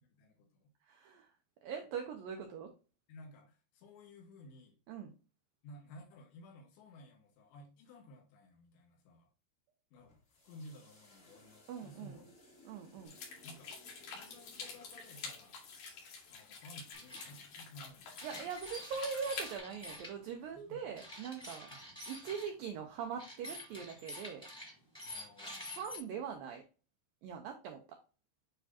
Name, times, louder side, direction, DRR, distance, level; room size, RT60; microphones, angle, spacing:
voice 1, 0.0-0.7 3.1-4.8 5.6-9.3 9.9-12.3 13.4-15.6 16.3-18.3 20.5-21.0 21.9-22.0 25.0-25.8, left 1 dB, 85° left, 1 dB, 3.9 m, -55 dB
voice 2, 0.8-1.3 1.6-2.7 4.9-5.1 11.7-12.2 12.7-13.2 18.2-21.7 22.1-24.4 25.8-26.6 27.2-28.0, right 6 dB, 80° right, 4 dB, 2.0 m, -42 dB
sound 1, 10.0-22.4, left 2 dB, 40° left, 1.2 m, -63 dB
sound 2, 13.1-19.6, left 5 dB, 60° left, 3.5 m, -48 dB
sound 3, 16.9-17.3 18.2-20.1 20.9-22.5 23.2-26.0, left 1 dB, ahead, 1.6 m, -47 dB
9.6 x 3.5 x 2.8 m, 0.35 s
omnidirectional pair, 5.0 m